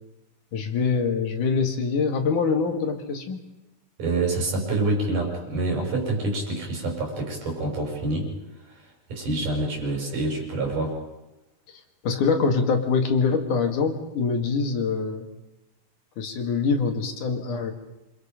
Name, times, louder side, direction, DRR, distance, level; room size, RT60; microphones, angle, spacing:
voice 1, 0.5-3.4 12.0-15.3 16.2-17.7, left 5 dB, 75° left, 4 dB, 3.7 m, -24 dB
voice 2, 4.0-8.3 8.7-8.8 9.1-11.0, right 2 dB, 90° right, 1 dB, 7.2 m, -27 dB
27.5 x 26.0 x 5.2 m, 0.96 s
omnidirectional pair, 3.6 m